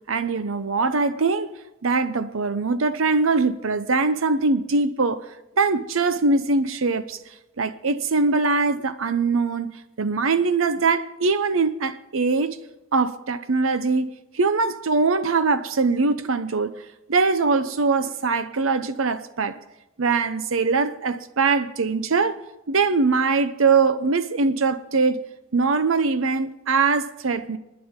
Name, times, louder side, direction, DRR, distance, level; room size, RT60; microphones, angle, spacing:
voice 1, 0.1-1.5 1.8-5.2 5.6-7.2 7.6-12.6 12.9-16.8 17.1-19.6 20.0-22.4 22.7-25.2 25.5-27.6, right 4 dB, 90° right, 0.8 m, -22 dB
26.5 x 10.0 x 3.7 m
head